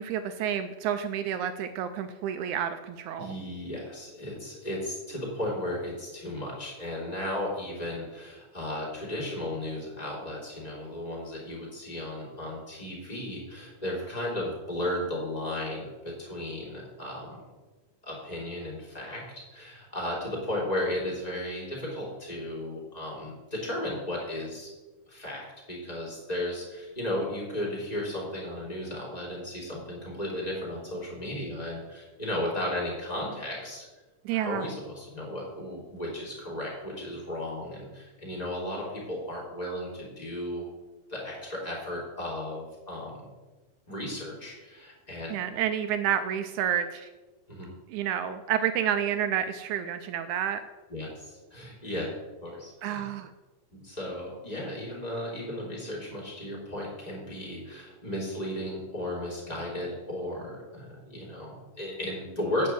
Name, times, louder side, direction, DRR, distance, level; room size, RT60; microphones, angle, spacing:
voice 1, 0.0-3.3 34.2-34.7 45.3-47.1 47.9-50.6 52.8-53.3, right 9 dB, 85° right, 10 dB, 1.7 m, -29 dB
voice 2, 3.2-17.4 18.0-24.7 25.1-33.9 34.3-40.6 41.1-43.3 43.9-45.3 47.5-47.7 50.9-52.1 52.4-53.0 53.7-62.7, left 1 dB, 10° left, -4 dB, 3.0 m, -35 dB
9.4 x 5.4 x 7.8 m, 1.2 s
omnidirectional pair, 3.9 m